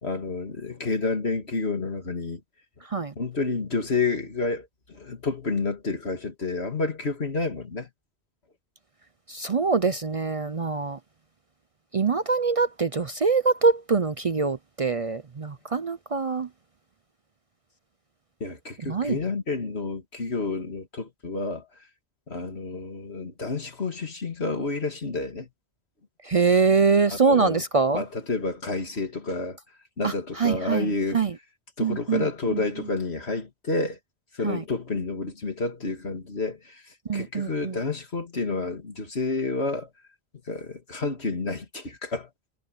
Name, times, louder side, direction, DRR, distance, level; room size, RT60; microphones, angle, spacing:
voice 1, 0.0-2.4 3.2-7.9 18.4-21.7 22.3-25.5 27.1-27.6 27.9-29.6 30.0-31.2 31.8-34.0 34.3-36.8 37.1-39.9 40.5-42.3, left 3 dB, 80° left, 2.9 m, -29 dB
voice 2, 9.3-11.0 11.9-16.5 18.9-19.2 26.2-28.0 30.0-31.3 31.8-32.6 34.4-34.6 37.1-37.8, right 5 dB, 40° right, 0.6 m, -24 dB
omnidirectional pair, 1.1 m